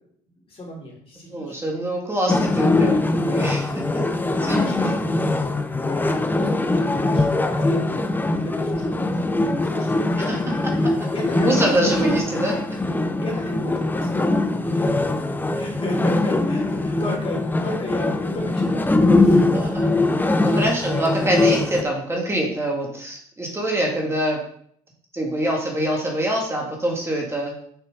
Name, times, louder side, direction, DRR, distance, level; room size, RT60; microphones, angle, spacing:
voice 1, 0.5-1.5 4.4-5.1 5.7-9.3 9.6-10.4 11.1-12.1 13.2-15.2 15.5-18.9 19.2-19.6 20.1-20.8, left 1 dB, 40° left, -2 dB, 3.3 m, -33 dB
voice 2, 1.3-3.8 4.5-4.9 10.3-10.4 11.3-12.5 19.1-19.8 20.4-24.4 25.1-27.5, right 1 dB, 15° right, -1 dB, 2.2 m, -25 dB
sound 1, 2.3-21.8, left 2 dB, 10° left, 0.7 m, -22 dB
7.2 x 5.5 x 3.8 m, 0.63 s
supercardioid pair, 80°, 15 cm